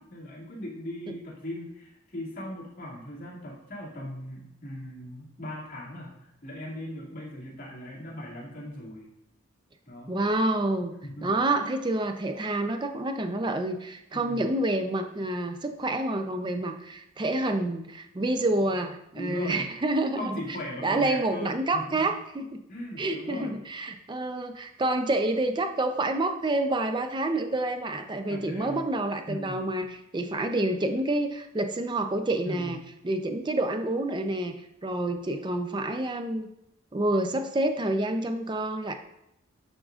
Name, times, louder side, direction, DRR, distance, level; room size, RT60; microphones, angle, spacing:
voice 1, 0.0-9.1 9.9-10.2 11.0-11.3 14.1-14.5 19.2-19.7 20.2-22.1 22.7-23.6 28.3-28.9 29.3-29.7 32.4-32.9, equal, 40° left, -6 dB, 2.2 m, -39 dB
voice 2, 10.1-10.9 11.2-20.4 20.8-22.6 23.0-32.8 33.0-34.5 34.8-36.5 36.9-38.9, right 2 dB, 20° right, 7 dB, 0.4 m, -28 dB
11.0 x 3.7 x 2.4 m, 0.80 s
head